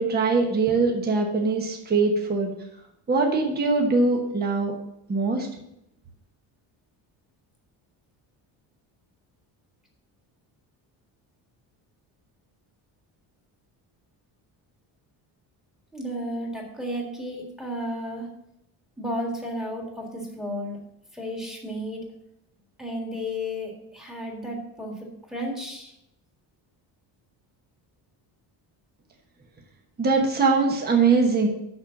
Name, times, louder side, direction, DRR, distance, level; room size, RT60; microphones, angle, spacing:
voice 1, 0.0-2.5 3.1-4.7 5.1-5.5 30.0-31.5, right 4 dB, 20° right, 2 dB, 1.1 m, -22 dB
voice 2, 15.9-18.3 19.0-20.8 21.1-22.1 22.8-25.9, equal, ahead, -1 dB, 1.7 m, -33 dB
6.5 x 6.4 x 7.0 m, 0.80 s
cardioid pair, 175°, 45 cm